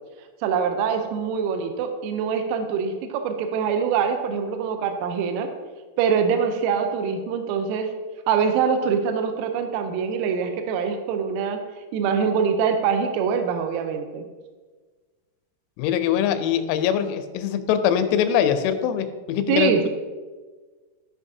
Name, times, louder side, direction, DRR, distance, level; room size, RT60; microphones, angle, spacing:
voice 1, 0.4-5.5 6.0-7.9 8.3-11.6 11.9-14.2 19.5-19.9, right 6 dB, 85° right, 6 dB, 3.2 m, -24 dB
voice 2, 15.8-19.9, left 9 dB, 90° left, 8 dB, 3.4 m, -22 dB
13.5 x 5.9 x 2.7 m, 1.4 s
omnidirectional pair, 6.0 m